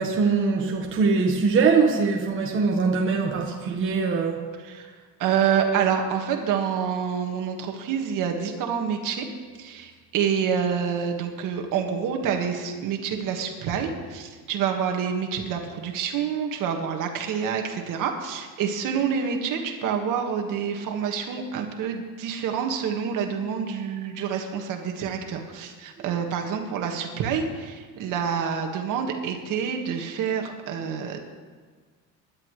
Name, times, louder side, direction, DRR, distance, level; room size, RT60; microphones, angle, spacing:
voice 1, 0.0-4.5 28.0-28.1, right 4 dB, 30° right, 0 dB, 1.4 m, -22 dB
voice 2, 5.2-9.3 9.6-31.3, right 7 dB, 55° right, 3 dB, 1.8 m, -27 dB
22.0 x 11.0 x 3.2 m, 1.5 s
cardioid pair, 135°, 38 cm